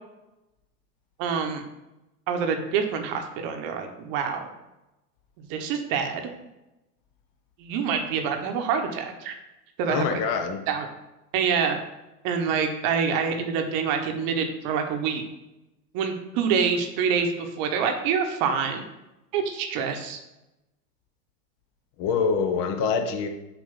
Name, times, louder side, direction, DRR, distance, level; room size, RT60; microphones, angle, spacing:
voice 1, 1.2-1.6 2.3-4.5 5.4-6.3 7.6-9.3 9.8-10.2 10.7-10.9 11.3-11.8 12.2-15.2 15.9-18.8 19.3-20.2, right 6 dB, 45° right, 5 dB, 1.1 m, -26 dB
voice 2, 9.9-10.6 22.0-23.3, left 5 dB, 45° left, 6 dB, 0.9 m, -25 dB
6.9 x 2.8 x 5.6 m, 0.95 s
hypercardioid pair, 95°, 48 cm